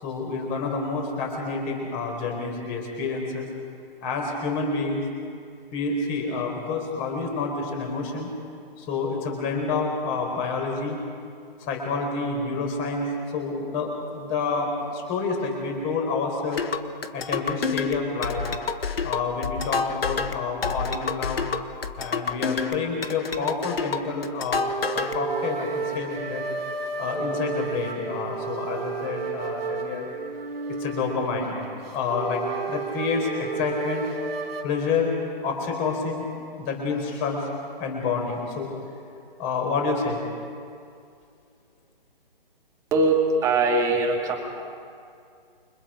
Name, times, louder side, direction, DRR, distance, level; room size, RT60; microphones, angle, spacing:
voice 1, 0.0-3.5 4.0-5.0 5.7-8.3 8.8-11.0 11.7-13.1 13.3-16.6 17.1-18.4 19.0-21.5 22.0-24.7 24.9-26.4 26.8-30.1 30.7-31.6 31.9-32.4 32.7-34.1 34.6-35.1 35.4-36.3 36.6-37.5 37.8-38.7 39.4-40.2, left 4 dB, 20° left, 1 dB, 4.8 m, -28 dB
sound 1, 16.5-25.2, left 5 dB, 85° left, 1.5 m, -29 dB
sound 2, 24.5-34.6, right 4 dB, 90° right, 2.7 m, -32 dB
voice 2, 43.4-44.4, right 3 dB, 10° right, 0 dB, 2.1 m, -21 dB
29.5 x 25.5 x 5.2 m, 2.3 s
hypercardioid pair, 155°, 29 cm